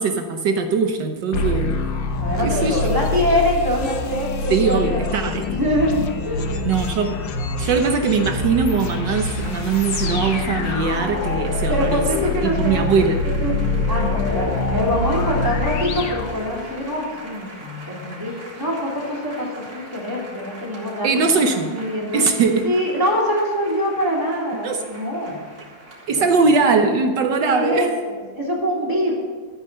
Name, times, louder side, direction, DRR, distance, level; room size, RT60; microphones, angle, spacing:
voice 1, 0.0-1.8 2.4-2.9 4.5-5.6 6.6-7.2 7.6-12.0 12.4-13.2 21.0-21.7 22.1-22.7 24.6-24.8 26.1-27.9, right 4 dB, 70° right, 5 dB, 1.5 m, -20 dB
sound 1, 1.3-16.9, left 3 dB, 75° left, 1.8 m, -25 dB
voice 2, 2.1-5.0 5.5-6.7 11.7-13.6 13.9-22.3 22.6-25.4 26.1-26.2 27.5-29.1, equal, 10° right, -3 dB, 3.1 m, -24 dB
Applause / Crowd, 8.3-26.9, right 1 dB, 35° right, 4.4 m, -40 dB
14.0 x 9.6 x 5.5 m, 1.5 s
omnidirectional pair, 2.1 m